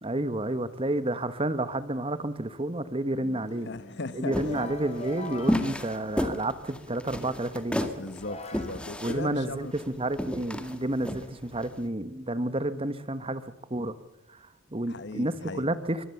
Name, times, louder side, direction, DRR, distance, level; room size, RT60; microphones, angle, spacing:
voice 1, 0.0-3.7 4.1-8.0 9.0-13.4 13.7-14.0 14.3-14.4 14.7-16.1, right 1 dB, 30° right, 1.3 m, -30 dB
sound 1, 3.1-6.8 7.6-7.7 8.2-10.1, left 2 dB, 35° left, 3.9 m, -43 dB
voice 2, 3.6-4.7 8.0-9.7 14.9-15.7, left 3 dB, 60° left, 1.1 m, -38 dB
sound 2, 4.3-11.8, left 1 dB, 5° left, 1.9 m, -32 dB
24.5 x 21.5 x 7.2 m
head